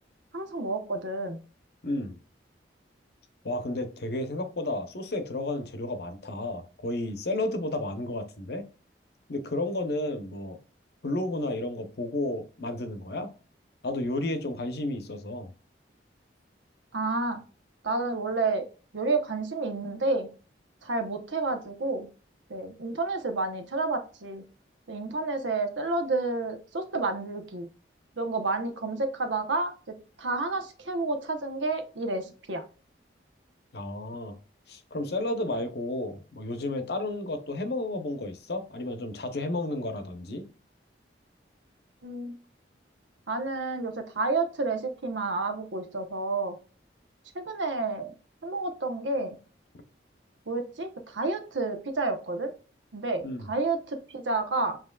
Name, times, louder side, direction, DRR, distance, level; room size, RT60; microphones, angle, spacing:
voice 1, 0.3-1.4 16.9-17.4 17.8-18.7 18.9-20.3 20.8-22.1 22.5-24.4 24.9-27.7 28.2-29.7 30.2-32.6 42.0-42.4 43.3-46.6 47.3-48.1 48.4-49.4 50.5-52.5 52.9-54.8, right 3 dB, 85° right, 0.9 m, -30 dB
voice 2, 1.8-2.2 3.4-8.6 9.3-10.6 11.0-13.3 13.8-15.5 33.7-34.4 34.7-40.4 53.2-53.5, left 2 dB, 60° left, 0.7 m, -32 dB
7.3 x 3.0 x 2.3 m
head